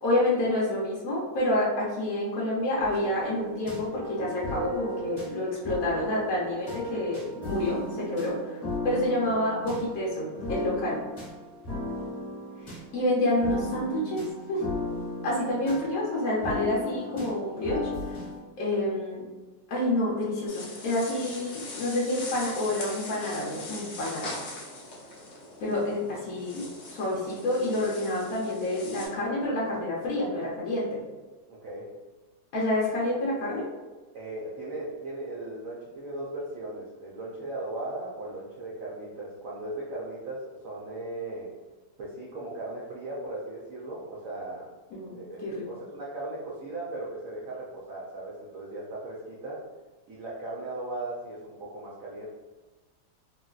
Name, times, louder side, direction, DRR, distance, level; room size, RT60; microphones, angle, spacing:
voice 1, 0.0-8.6 8.8-11.0 12.6-14.7 15.2-17.9 18.6-19.3 19.7-24.4 25.6-31.0 32.5-33.7 44.9-45.6, left 1 dB, 65° left, -6 dB, 0.9 m, -28 dB
sound 1, 2.8-18.4, left 1 dB, 45° left, 1.2 m, -36 dB
sound 2, 20.5-29.1, left 2 dB, 85° left, 0.6 m, -41 dB
voice 2, 31.6-31.9 34.1-41.5 42.0-44.7 45.1-49.6 50.1-52.3, right 2 dB, 80° right, -6 dB, 0.7 m, -37 dB
3.7 x 2.1 x 2.3 m, 1.2 s
omnidirectional pair, 2.1 m